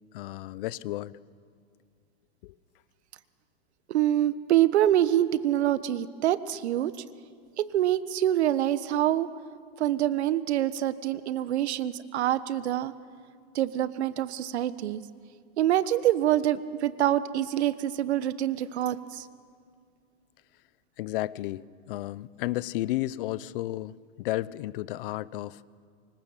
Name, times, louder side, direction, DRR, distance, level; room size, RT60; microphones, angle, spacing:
voice 1, 0.1-1.1 2.4-2.5 21.0-25.6, left 16 dB, 55° left, 19 dB, 0.8 m, -33 dB
voice 2, 3.9-6.9 7.6-9.3 9.8-12.9 13.5-15.0 15.6-19.3, right 12 dB, 75° right, 14 dB, 1.4 m, -25 dB
26.0 x 25.0 x 7.4 m, 2.2 s
supercardioid pair, 150°, 33 cm